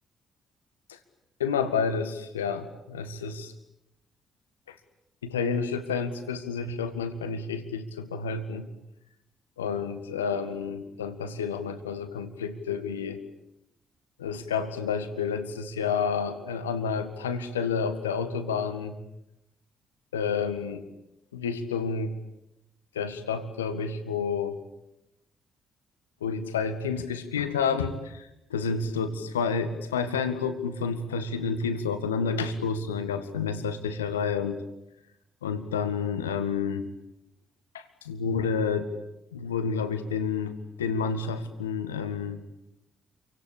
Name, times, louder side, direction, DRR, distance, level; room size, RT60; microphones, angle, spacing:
voice 1, 1.4-3.5 4.7-4.8 5.2-8.7 9.6-13.2 14.2-19.0 20.1-20.8 21.3-22.2 22.9-24.6 26.2-34.6 35.4-36.9 37.7-38.9 39.3-42.5, left 5 dB, 80° left, 9 dB, 1.8 m, -30 dB
28.0 x 25.0 x 8.5 m, 0.86 s
figure-of-eight pair, 40°, 0 cm